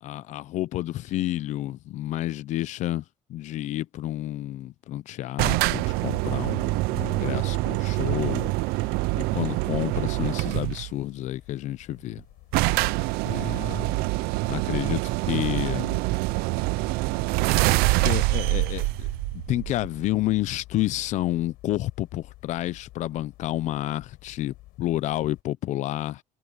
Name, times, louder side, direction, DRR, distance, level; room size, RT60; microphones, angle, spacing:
voice 1, 0.0-3.0 3.3-8.5 9.1-12.2 13.3-14.0 14.5-16.0 18.0-19.1 19.3-26.2, left 15 dB, 50° left, 0.6 m, -30 dB
sound 1, 5.4-10.9 11.9-12.0 12.2-12.3 12.5-20.0, right 22 dB, 85° right, 0.6 m, -25 dB
sound 2, 5.6-25.4, left 18 dB, 70° left, 7.3 m, -50 dB
cardioid pair, 170°, 16 cm